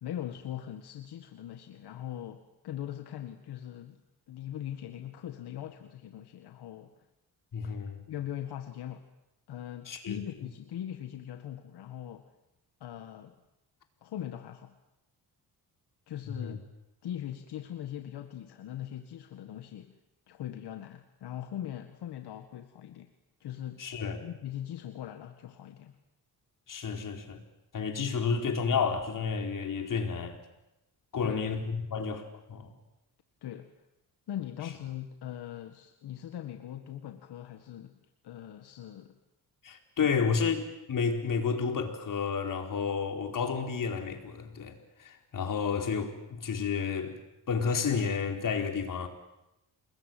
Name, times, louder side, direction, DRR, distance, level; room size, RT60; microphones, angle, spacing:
voice 1, 0.0-4.0 4.3-7.1 7.6-7.7 8.1-9.1 9.5-12.3 12.8-13.4 14.0-14.8 16.1-16.6 17.0-20.0 20.3-23.1 23.4-23.9 24.2-26.0 31.2-31.4 33.4-33.8 34.3-39.2 40.0-40.2, left 11 dB, 80° left, 1.8 m, -41 dB
voice 2, 7.5-8.0 9.9-10.2 16.3-16.6 23.8-24.2 26.7-27.4 27.7-30.4 31.1-32.7 39.6-40.6 40.9-47.2 47.5-49.1, left 5 dB, 55° left, 4.6 m, -31 dB
28.0 x 21.5 x 9.3 m
cardioid pair, 110°, 39 cm